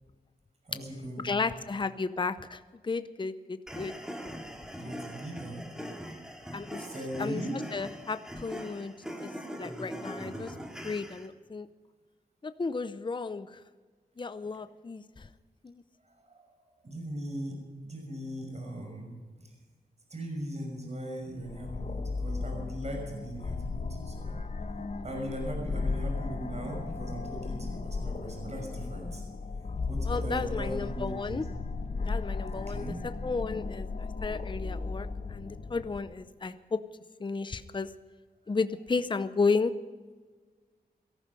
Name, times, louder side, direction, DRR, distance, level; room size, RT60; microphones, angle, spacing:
voice 1, 0.6-1.4 4.8-5.6 6.8-7.6 16.2-16.5 16.8-17.6 17.8-19.2 20.1-24.4 25.0-29.2 29.8-31.5 32.6-33.0, right 1 dB, 45° right, 1 dB, 5.9 m, -39 dB
voice 2, 1.2-3.9 6.5-6.9 7.2-7.4 7.7-8.9 9.2-9.3 9.6-10.5 10.8-11.7 12.4-13.6 14.2-15.3 15.6-15.8 30.0-31.5 32.1-33.9 34.2-36.8 37.2-37.9 38.5-39.7, left 4 dB, 30° left, 12 dB, 0.7 m, -33 dB
sound 1, 3.7-11.3, equal, 5° right, 2.4 m, -41 dB
sound 2, 21.4-36.0, left 3 dB, 45° left, 1.2 m, -35 dB
18.0 x 14.0 x 5.4 m, 1.4 s
wide cardioid pair, 85°, 16 cm